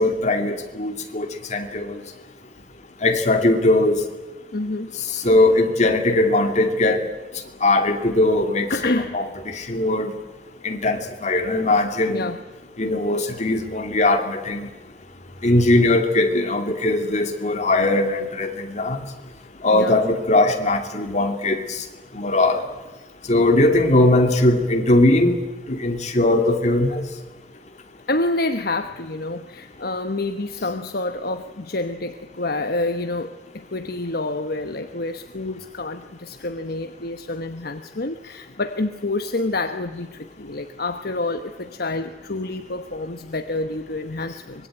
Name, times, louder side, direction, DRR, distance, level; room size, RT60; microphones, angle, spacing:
voice 1, 0.0-2.0 3.0-4.0 5.2-7.0 7.6-10.1 10.6-12.2 12.8-14.7 15.4-19.0 19.6-21.8 22.1-22.6 23.3-25.4 25.7-27.0, left 2 dB, 40° left, 5 dB, 2.5 m, -20 dB
voice 2, 4.5-4.9 8.7-9.2 12.1-12.4 19.7-20.0 28.1-44.7, left 2 dB, 55° left, 7 dB, 1.1 m, -28 dB
24.5 x 22.0 x 8.9 m, 1.2 s
head